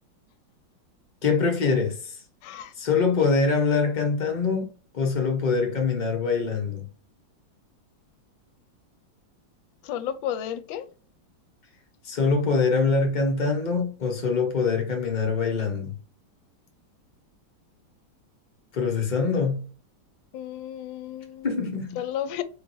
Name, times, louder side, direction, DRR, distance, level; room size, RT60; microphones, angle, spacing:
voice 1, 1.2-2.2 2.8-6.9 12.0-15.9 18.7-19.7 21.4-22.0, left 4 dB, 60° left, 0.4 m, -24 dB
voice 2, 2.4-2.7 9.8-10.9 20.3-21.5 22.0-22.4, left 10 dB, 75° left, 1.3 m, -32 dB
4.7 x 3.2 x 2.6 m
omnidirectional pair, 2.2 m